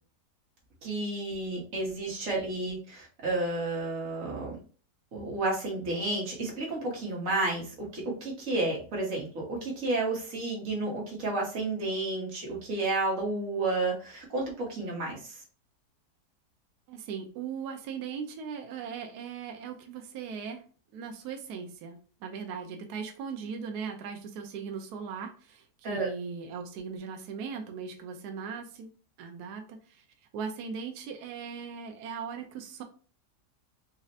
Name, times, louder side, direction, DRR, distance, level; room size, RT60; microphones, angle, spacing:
voice 1, 0.8-4.6 5.1-15.4 25.8-26.1, right 2 dB, 55° right, -3 dB, 1.6 m, -31 dB
voice 2, 16.9-20.6 20.9-28.9 29.2-30.0 30.3-32.8, right 6 dB, 75° right, 4 dB, 1.1 m, -39 dB
4.1 x 2.4 x 2.6 m, 0.39 s
omnidirectional pair, 1.8 m